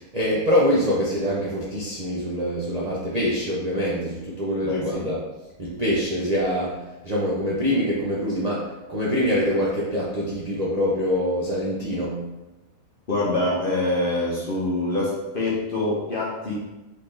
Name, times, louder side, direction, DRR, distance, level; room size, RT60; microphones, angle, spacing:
voice 1, 0.0-5.3 5.6-6.8 7.0-12.3, equal, 40° right, -7 dB, 0.6 m, -24 dB
voice 2, 4.6-5.0 13.1-16.5, left 2 dB, 40° left, -5 dB, 0.9 m, -25 dB
4.1 x 3.8 x 3.3 m, 1.0 s
omnidirectional pair, 1.7 m